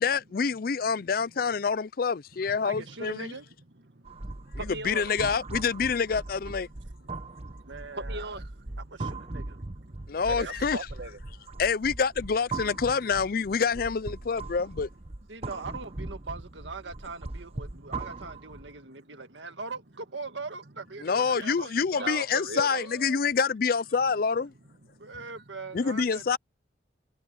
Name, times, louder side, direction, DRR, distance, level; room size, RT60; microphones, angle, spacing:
voice 1, 0.0-3.3 4.6-6.7 10.1-10.8 11.6-14.9 21.0-24.5 25.7-26.4, left 5 dB, 50° left, 0.5 m, -27 dB
voice 2, 2.6-3.5 7.7-8.4 8.8-9.6 10.4-10.7 15.3-22.3 22.7-23.2 25.0-26.4, right 3 dB, 85° right, 1.8 m, -41 dB
voice 3, 3.9-5.1 7.0-8.8 9.3-11.6 17.8-17.9 18.7-19.0 22.0-22.9 24.9-25.4, right 3 dB, 60° right, 1.5 m, -41 dB
sound 1, 4.0-18.8, right 2 dB, 35° right, 0.9 m, -39 dB
head